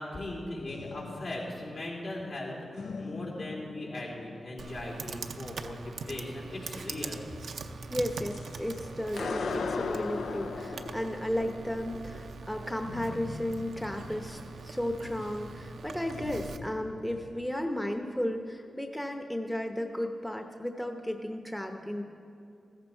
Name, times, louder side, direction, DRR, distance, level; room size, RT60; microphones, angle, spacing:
voice 1, 0.0-7.2, left 1 dB, 70° left, -4 dB, 3.4 m, -39 dB
sound 1, 0.7-2.4 2.7-4.8 8.0-17.5, left 4 dB, 85° left, 0.6 m, -40 dB
Computer keyboard, 4.6-16.6, right 4 dB, 85° right, 0.6 m, -42 dB
voice 2, 7.9-22.0, left 1 dB, 5° left, 4 dB, 0.8 m, -34 dB
14.5 x 14.5 x 4.5 m, 2.6 s
cardioid pair, 70°, 0 cm